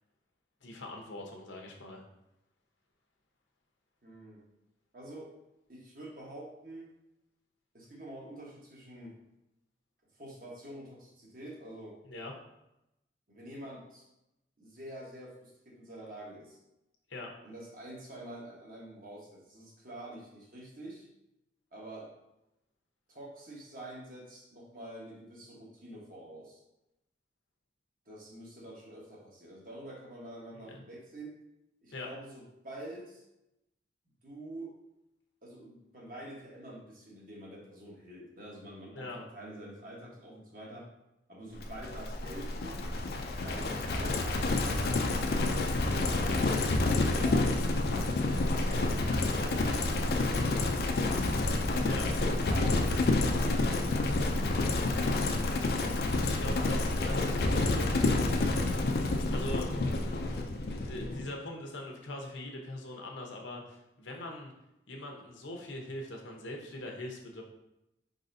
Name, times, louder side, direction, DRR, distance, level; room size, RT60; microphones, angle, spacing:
voice 1, 0.6-2.0 12.1-12.3 17.1-17.3 30.6-30.8 31.9-32.1 38.9-39.2 51.8-52.1 56.2-58.8 59.3-59.7 60.8-64.5 64.9-67.4, left 1 dB, 90° left, 1 dB, 0.9 m, -42 dB
voice 2, 4.0-4.4 4.9-5.3 5.7-6.9 7.7-9.1 10.2-12.0 13.3-14.0 14.6-16.6 17.4-21.1 21.7-22.1 23.1-26.6 28.1-31.3 31.8-33.2 34.2-34.8 35.4-40.9 41.3-42.9 43.4-47.5 48.4-51.3 52.2-54.3, right 1 dB, 45° right, -3 dB, 1.2 m, -46 dB
Livestock farm animals working animals, 41.6-61.3, left 2 dB, 55° left, 0.4 m, -29 dB
4.9 x 4.0 x 2.6 m, 0.89 s
head